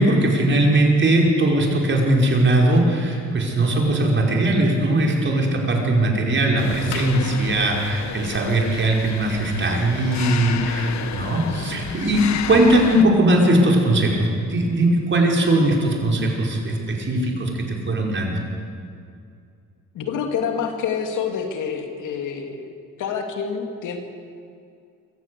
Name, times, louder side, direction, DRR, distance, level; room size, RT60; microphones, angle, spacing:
voice 1, 0.0-18.4, right 1 dB, 40° right, 0 dB, 5.2 m, -19 dB
sound 1, 6.6-13.0, left 8 dB, 65° left, 1.5 m, -32 dB
voice 2, 19.9-22.7 23.0-24.0, left 6 dB, 80° left, 4 dB, 2.7 m, -27 dB
24.0 x 15.0 x 8.5 m, 2.4 s
cardioid pair, 90°, 30 cm